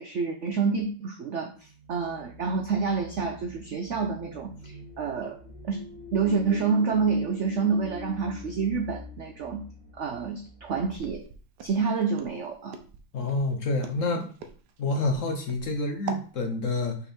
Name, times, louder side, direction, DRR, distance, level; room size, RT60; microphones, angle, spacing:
voice 1, 0.0-1.5 1.9-5.4 5.6-5.8 6.1-9.6 9.9-11.2 11.6-12.8, right 5 dB, 85° right, 4 dB, 0.6 m, -28 dB
sound 1, 1.6-11.0, left 2 dB, 35° right, 1.1 m, -48 dB
sound 2, 4.5-10.1, left 4 dB, 85° left, 1.7 m, -45 dB
Walk footsteps, 11.0-16.3, right 5 dB, 65° right, 1.2 m, -42 dB
voice 2, 13.1-14.3 14.8-17.0, left 2 dB, 55° left, 3 dB, 1.0 m, -28 dB
5.8 x 4.1 x 4.3 m, 0.41 s
omnidirectional pair, 2.1 m